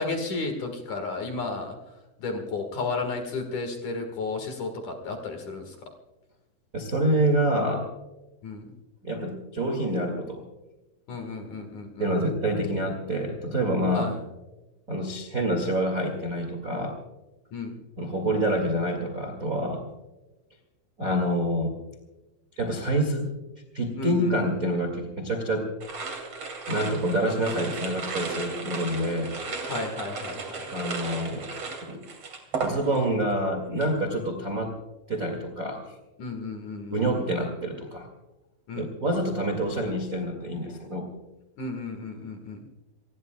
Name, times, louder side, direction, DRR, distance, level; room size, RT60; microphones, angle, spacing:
voice 1, 0.0-1.7 2.2-5.7 8.4-8.7 11.1-12.3 13.9-14.2 17.5-17.7 24.0-24.3 29.7-30.4 36.2-37.0 38.7-38.9 41.6-42.6, left 3 dB, 55° left, 4 dB, 2.5 m, -33 dB
voice 2, 6.7-7.9 9.0-10.4 12.0-14.1 14.9-17.0 18.0-19.8 21.0-21.7 22.5-23.3 23.7-25.7 26.7-29.3 30.7-31.5 31.8-32.0 32.6-34.7 35.1-35.9 36.9-38.1 38.7-41.1, right 1 dB, 50° right, 3 dB, 0.9 m, -27 dB
sound 1, 25.8-33.2 33.5-34.0, right 4 dB, 35° right, 2.9 m, -35 dB
28.5 x 19.5 x 2.3 m, 1.1 s
omnidirectional pair, 5.3 m